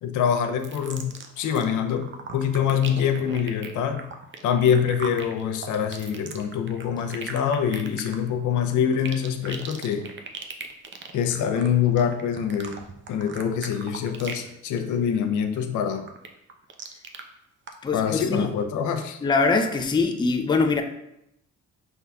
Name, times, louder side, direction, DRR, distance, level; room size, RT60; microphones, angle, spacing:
voice 1, 0.0-4.1 4.4-10.1 11.1-12.8 13.1-16.1 17.9-19.2, left 8 dB, 80° left, 6 dB, 0.5 m, -25 dB
sound 1, 0.6-1.7 2.0-14.5 14.8-15.2 15.6-17.2 17.7-17.8, right 5 dB, 40° right, 0.5 m, -39 dB
voice 2, 17.8-18.5 19.2-20.8, left 4 dB, 15° left, 5 dB, 0.4 m, -23 dB
5.4 x 3.5 x 2.2 m, 0.81 s
cardioid pair, 90°, 30 cm